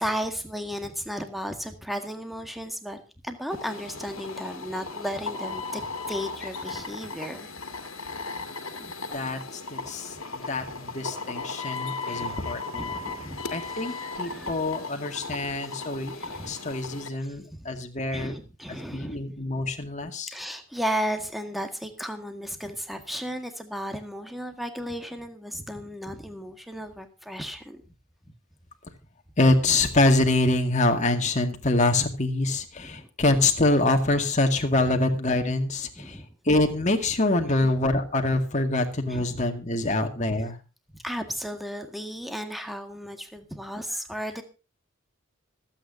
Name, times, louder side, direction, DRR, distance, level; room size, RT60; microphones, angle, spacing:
voice 1, 0.0-7.5 8.8-8.9 10.2-10.3 12.1-12.4 12.7-15.3 15.7-15.8 16.1-16.6 17.2-17.7 18.1-19.2 20.3-27.8 32.8-33.1 34.9-35.0 36.0-36.3 37.4-37.7 39.1-39.4 40.9-44.4, equal, ahead, 6 dB, 1.8 m, -35 dB
sound 1, 3.5-17.1, left 3 dB, 85° left, 2.1 m, -36 dB
voice 2, 9.1-12.9 13.5-16.2 16.5-18.3 18.9-20.3 29.4-40.6, left 2 dB, 35° left, 4 dB, 2.1 m, -25 dB
25.5 x 9.0 x 2.7 m, 0.31 s
head